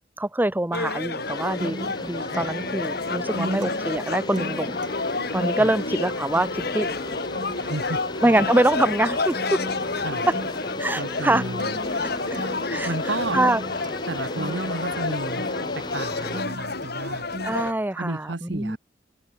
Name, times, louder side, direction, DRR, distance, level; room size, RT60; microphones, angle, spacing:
voice 1, 0.2-4.8 5.3-6.9 8.2-9.6 10.8-11.4 12.0-12.1 12.7-12.9 13.3-13.6 17.4-18.8, right 1 dB, 10° right, 0.7 m, -24 dB
sound 1, 0.7-17.7, left 3 dB, 60° left, 2.7 m, -30 dB
sound 2, 1.2-16.4, left 2 dB, 25° left, 1.7 m, -37 dB
Acoustic guitar, 1.6-17.6, right 1 dB, 45° right, 2.9 m, -38 dB
voice 2, 7.6-8.0 10.0-10.3 10.9-11.7 12.8-13.4 14.1-15.5 15.7-17.3 17.9-18.8, right 2 dB, 70° right, 1.5 m, -32 dB
head